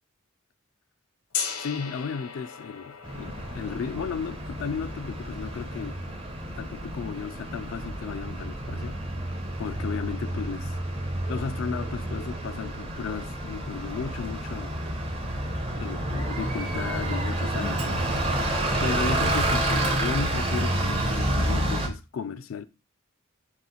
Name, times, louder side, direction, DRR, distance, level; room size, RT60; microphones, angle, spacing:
Gong, 1.3-7.2, left 6 dB, 90° left, 0.8 m, -39 dB
voice 1, 1.6-6.0 6.6-9.0 9.6-10.7 11.3-14.7 15.7-18.0 18.8-22.6, left 6 dB, 65° left, 0.3 m, -34 dB
Bus, 3.0-21.9, right 1 dB, 25° right, 0.6 m, -29 dB
4.0 x 2.5 x 3.8 m
head